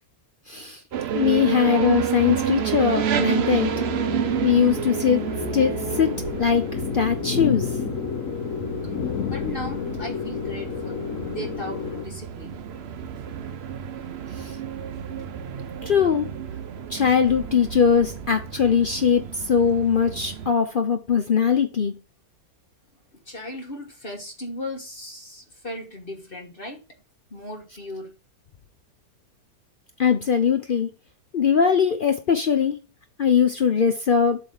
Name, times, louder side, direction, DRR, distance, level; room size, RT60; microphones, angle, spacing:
voice 1, 0.5-0.8 1.1-3.7 4.4-5.2 5.5-7.7 14.4-14.6 15.8-16.3 16.9-22.0 30.0-30.9 31.3-32.8 33.2-34.4, left 7 dB, 85° left, 0.4 m, -21 dB
sound 1, 0.9-20.5, right 8 dB, 55° right, 0.7 m, -30 dB
sound 2, 3.2-12.0, left 8 dB, 60° left, 0.9 m, -31 dB
voice 2, 9.2-12.6 23.3-26.8 27.3-28.1, left 1 dB, 35° left, 1.5 m, -36 dB
7.9 x 3.6 x 6.3 m
omnidirectional pair, 1.8 m